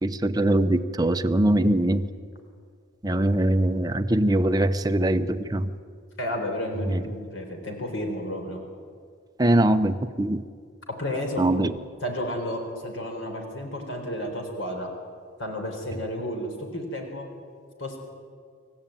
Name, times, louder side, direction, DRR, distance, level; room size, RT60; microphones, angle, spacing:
voice 1, 0.0-2.0 3.0-5.7 6.9-7.0 9.4-10.4 11.4-11.7, right 1 dB, 20° right, 8 dB, 0.8 m, -22 dB
voice 2, 6.2-8.6 10.9-11.5 12.0-14.9 15.4-17.3 17.8-18.0, left 1 dB, 70° left, 3 dB, 4.1 m, -32 dB
27.5 x 15.0 x 9.1 m, 2.1 s
head